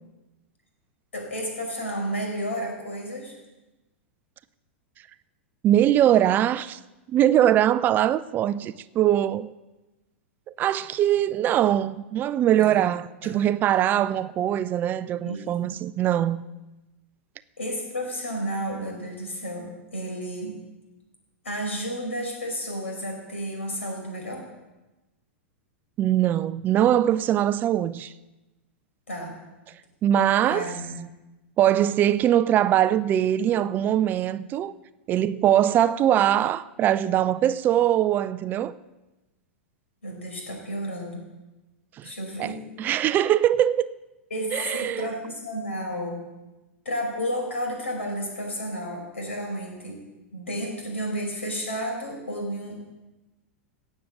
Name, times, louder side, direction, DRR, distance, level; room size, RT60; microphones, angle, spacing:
voice 1, 1.1-3.4 12.6-12.8 13.2-13.4 15.2-15.8 17.6-20.6 21.4-24.4 29.1-29.4 30.5-31.0 40.0-41.2 42.0-42.6 44.3-46.2 46.9-50.0 50.3-52.8, equal, 75° left, 5.4 m, -32 dB
voice 2, 5.6-6.8 7.1-9.5 10.6-16.4 26.0-28.1 30.0-30.7 31.6-34.7 35.1-38.7 42.0-42.1 42.4-42.5 42.8-43.9 44.5-45.1, right 11 dB, 30° right, 0.4 m, -22 dB
17.5 x 6.6 x 7.4 m
figure-of-eight pair, 95°, 7 cm